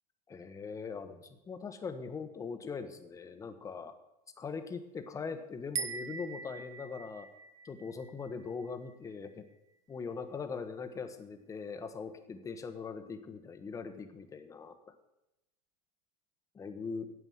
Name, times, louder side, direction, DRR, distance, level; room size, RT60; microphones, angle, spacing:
voice 1, 0.3-3.9 4.4-7.3 7.6-9.4 9.9-14.7 16.5-17.1, left 5 dB, 15° left, 8 dB, 1.1 m, -41 dB
sound 1, 5.8-9.1, right 5 dB, 15° right, 0.5 m, -42 dB
9.3 x 8.1 x 7.9 m, 0.92 s
supercardioid pair, 140°, 21 cm